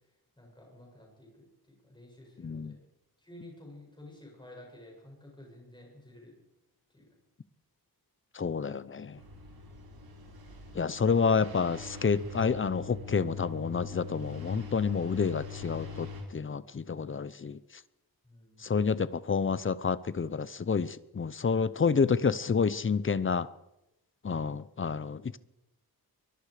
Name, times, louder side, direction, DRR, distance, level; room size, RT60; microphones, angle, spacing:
voice 1, 0.4-2.9 3.2-6.4 6.9-7.2 18.2-18.6, left 1 dB, 10° left, -1 dB, 7.7 m, -52 dB
voice 2, 2.4-2.8 8.3-9.2 10.7-17.6 18.6-23.5 24.2-25.4, left 5 dB, 30° left, 16 dB, 0.7 m, -29 dB
sound 1, 9.2-16.2, left 3 dB, 65° right, 5.6 m, -44 dB
23.5 x 22.0 x 5.0 m, 0.89 s
wide cardioid pair, 165°, 39 cm